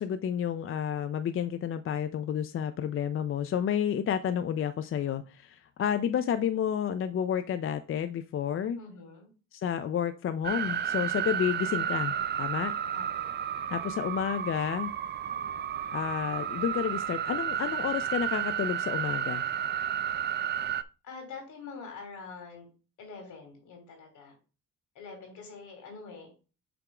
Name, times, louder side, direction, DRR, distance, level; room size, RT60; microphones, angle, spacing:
voice 1, 0.0-8.8 9.5-12.7 13.7-14.9 15.9-19.4, left 9 dB, 45° left, 11 dB, 0.5 m, -30 dB
voice 2, 8.7-9.3 12.9-13.5 21.0-22.7 23.0-24.3 24.9-26.3, left 4 dB, 75° left, 3 dB, 3.1 m, -45 dB
sound 1, 10.4-20.8, right 9 dB, 35° right, 0.4 m, -32 dB
6.8 x 3.5 x 4.8 m, 0.33 s
cardioid pair, 90°, 30 cm